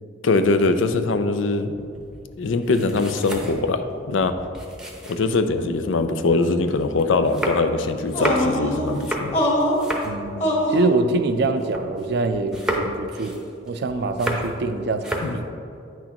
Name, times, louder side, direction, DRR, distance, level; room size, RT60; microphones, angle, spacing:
voice 1, 0.2-1.7 2.4-4.3 5.1-9.3 15.2-15.4, left 3 dB, 75° left, 9 dB, 0.5 m, -22 dB
sound 1, 1.8-5.8 6.3-12.1 12.3-14.7 14.9-15.4, equal, 5° right, 0.7 m, -32 dB
sound 2, 8.1-8.9 9.3-9.8 10.4-10.8, equal, 35° left, 1.6 m, -22 dB
voice 2, 10.0-15.4, right 3 dB, 55° right, 8 dB, 0.4 m, -25 dB
9.3 x 6.1 x 2.9 m, 2.6 s
head